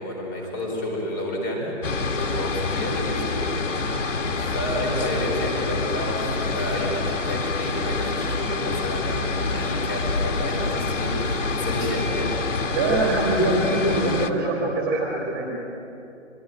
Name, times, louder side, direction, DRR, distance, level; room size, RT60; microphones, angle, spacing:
voice 1, 0.0-1.7 2.1-4.1 4.4-12.3, left 1 dB, 15° left, 0 dB, 4.3 m, -30 dB
sound 1, 1.8-14.3, left 3 dB, 85° left, 2.0 m, -26 dB
voice 2, 12.7-15.5, right 2 dB, 10° right, -3 dB, 3.5 m, -23 dB
24.0 x 23.5 x 9.2 m, 2.9 s
hypercardioid pair, 175°, 36 cm